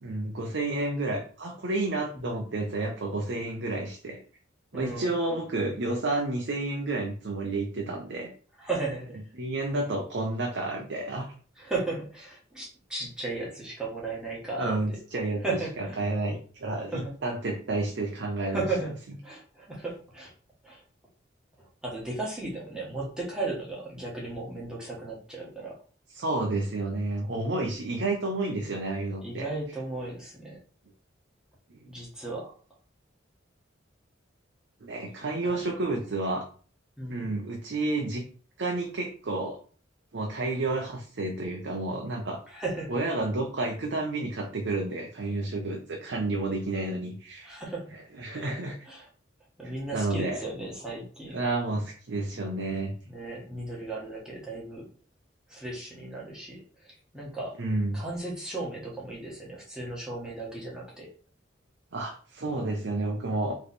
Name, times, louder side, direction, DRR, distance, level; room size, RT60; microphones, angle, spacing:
voice 1, 0.0-4.2 4.7-8.3 9.3-11.3 14.6-18.7 26.1-29.5 31.7-31.9 34.8-36.5 37.1-38.2 38.6-39.6 40.1-42.4 42.9-47.5 47.9-48.8 49.6-50.4 51.3-53.0 57.6-58.0 61.9-63.5, right 2 dB, 65° right, 1 dB, 0.7 m, -30 dB
voice 2, 4.7-5.1 8.6-9.2 11.6-15.0 15.4-16.0 16.9-17.1 18.5-18.9 19.2-20.3 20.6-20.8 21.8-25.7 29.2-30.6 31.9-32.5 35.4-35.6 37.0-37.3 42.5-42.9 47.4-47.8 48.9-49.1 49.6-51.4 53.1-54.9 55.5-56.6 57.1-57.5 57.9-61.1, right 2 dB, 5° right, -5 dB, 1.4 m, -35 dB
3.3 x 3.1 x 4.1 m, 0.42 s
head